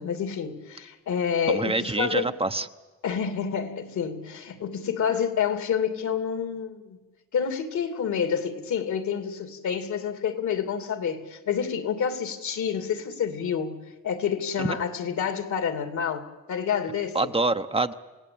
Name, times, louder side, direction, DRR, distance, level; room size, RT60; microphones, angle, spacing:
voice 1, 0.0-2.3 3.0-7.0 7.3-17.2, left 7 dB, 70° left, 2.9 m, -28 dB
voice 2, 1.5-2.7 14.6-14.8 17.1-17.9, right 3 dB, 20° right, 0.8 m, -26 dB
29.0 x 17.5 x 8.7 m
cardioid pair, 90°, 30 cm